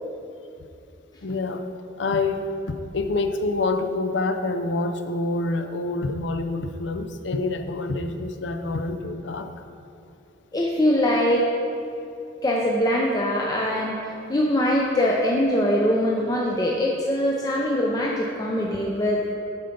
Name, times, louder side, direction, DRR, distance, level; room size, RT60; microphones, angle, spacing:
voice 1, 1.2-1.6 2.0-9.5, left 2 dB, 65° left, 7 dB, 0.6 m, -27 dB
voice 2, 10.5-11.5 12.4-19.4, left 1 dB, 20° left, -2 dB, 0.6 m, -22 dB
8.8 x 5.8 x 5.2 m, 2.6 s
head